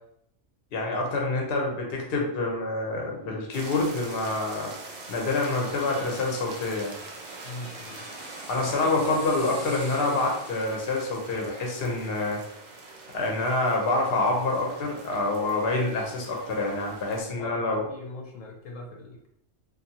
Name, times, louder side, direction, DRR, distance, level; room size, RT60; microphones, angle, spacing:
voice 1, 0.7-4.7 5.1-6.9 8.5-12.4 13.1-17.8, left 2 dB, 55° left, 0 dB, 0.8 m, -27 dB
sound 1, 3.5-17.2, right 3 dB, 90° right, 0.4 m, -44 dB
sound 2, 4.3-13.7 14.1-14.2, right 2 dB, 50° right, 0.7 m, -46 dB
voice 2, 7.4-8.1 8.6-9.2 9.5-10.2 17.4-19.3, left 2 dB, 80° left, 0 dB, 1.0 m, -41 dB
2.6 x 2.4 x 2.7 m, 0.74 s
omnidirectional pair, 1.3 m